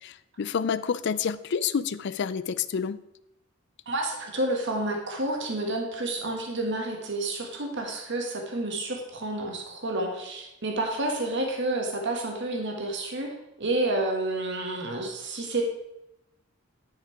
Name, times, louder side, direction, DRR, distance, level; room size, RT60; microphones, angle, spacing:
voice 1, 0.0-3.0, left 6 dB, 60° left, 16 dB, 0.4 m, -29 dB
voice 2, 3.8-15.6, right 2 dB, 60° right, 2 dB, 1.6 m, -30 dB
10.5 x 5.8 x 4.6 m, 0.88 s
head